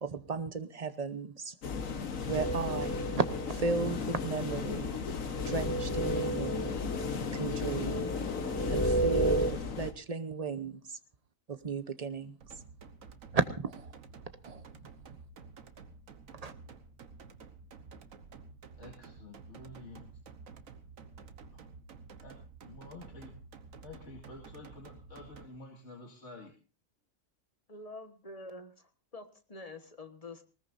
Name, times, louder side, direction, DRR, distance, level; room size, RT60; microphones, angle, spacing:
voice 1, 0.0-1.5 2.3-4.9 5.4-6.7 7.3-8.1 8.7-11.0 11.5-12.4 13.3-13.9 14.4-14.6 16.4-16.5, right 5 dB, 35° right, 11 dB, 0.9 m, -34 dB
sound 1, 1.6-9.9, left 5 dB, 75° left, 1.7 m, -36 dB
sound 2, 2.4-9.5, right 1 dB, 10° left, 0.8 m, -33 dB
sound 3, 12.4-25.5, right 5 dB, 80° right, 1.6 m, -51 dB
voice 2, 18.8-20.1 21.5-21.6 22.2-22.4 22.6-23.3 23.8-26.5, left 2 dB, 60° left, 0 dB, 2.5 m, -50 dB
voice 3, 27.7-30.4, left 2 dB, 30° left, 7 dB, 1.5 m, -47 dB
20.0 x 19.5 x 2.6 m, 0.34 s
omnidirectional pair, 1.4 m